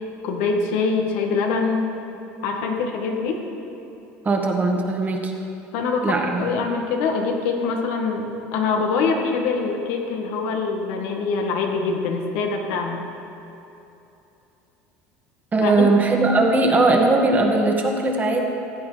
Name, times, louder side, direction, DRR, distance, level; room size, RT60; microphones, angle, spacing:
voice 1, 0.2-2.0 2.4-3.5 5.7-13.0 15.6-15.9, left 4 dB, 80° left, 2 dB, 1.7 m, -24 dB
voice 2, 4.2-5.3 6.0-6.4 15.5-18.4, right 2 dB, 25° right, 1 dB, 1.9 m, -19 dB
15.5 x 8.7 x 5.1 m, 2.9 s
supercardioid pair, 100°, 6 cm